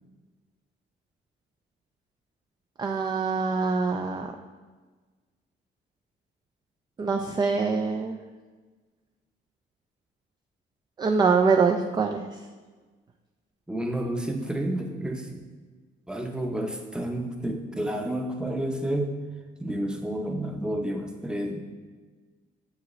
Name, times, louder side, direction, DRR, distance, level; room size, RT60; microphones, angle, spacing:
voice 1, 2.8-4.3 7.0-8.2 11.0-12.3, right 4 dB, 20° right, 5 dB, 0.3 m, -24 dB
voice 2, 13.7-15.4 16.1-19.1 19.6-21.6, right 1 dB, 5° right, 3 dB, 0.7 m, -30 dB
7.1 x 4.7 x 3.2 m, 1.4 s
cardioid pair, 90°, 20 cm